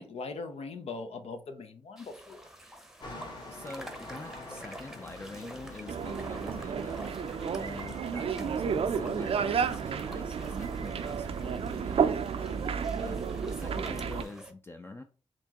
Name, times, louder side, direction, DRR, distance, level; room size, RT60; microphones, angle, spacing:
voice 1, 0.0-2.5 12.4-12.8, left 3 dB, 75° left, 0.7 m, -41 dB
sound 1, 2.0-14.5, right 1 dB, 5° right, 0.8 m, -49 dB
sound 2, 3.0-10.3, left 1 dB, 45° left, 1.3 m, -47 dB
voice 2, 3.4-7.1 7.6-12.2 13.0-15.0, left 2 dB, 20° left, 0.4 m, -45 dB
sound 3, 5.9-14.2, right 6 dB, 65° right, 0.4 m, -31 dB
4.3 x 3.0 x 2.9 m
cardioid pair, 75°, 11 cm